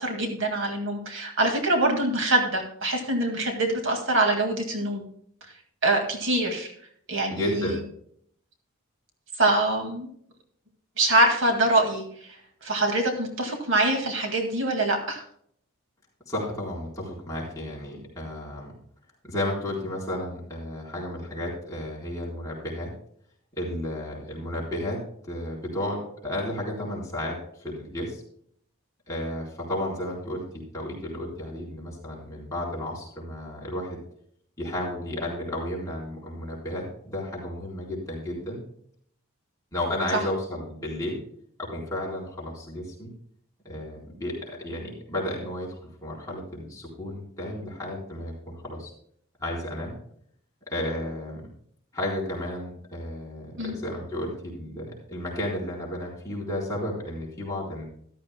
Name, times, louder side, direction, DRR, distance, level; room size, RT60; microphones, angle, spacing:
voice 1, 0.0-5.1 5.8-6.7 7.1-7.8 9.4-10.1 11.0-15.2 40.1-40.2 53.6-53.8, right 2 dB, 60° right, 3 dB, 2.1 m, -24 dB
voice 2, 7.3-7.8 16.3-18.7 19.2-22.9 23.6-25.0 25.2-28.2 29.1-34.0 34.6-38.6 39.7-41.2 41.6-43.1 43.6-48.9 49.4-50.0 50.7-51.4 51.9-57.8, left 1 dB, 15° left, -5 dB, 4.1 m, -33 dB
14.0 x 12.5 x 2.2 m, 0.64 s
head